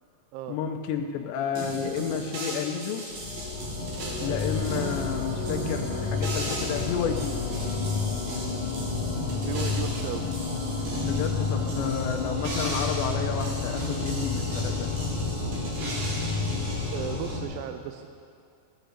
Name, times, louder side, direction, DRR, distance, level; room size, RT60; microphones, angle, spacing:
voice 1, 0.5-3.0 4.2-7.4 11.0-14.9, left 7 dB, 85° left, 4 dB, 2.6 m, -31 dB
sound 1, 1.6-17.4, right 1 dB, 50° right, 3.1 m, -37 dB
sound 2, 3.1-17.4, left 4 dB, 40° left, 2.0 m, -30 dB
voice 2, 4.0-4.4 9.4-10.3 16.5-18.2, right 10 dB, 90° right, 7 dB, 3.3 m, -36 dB
16.0 x 10.5 x 6.7 m, 2.5 s
omnidirectional pair, 5.9 m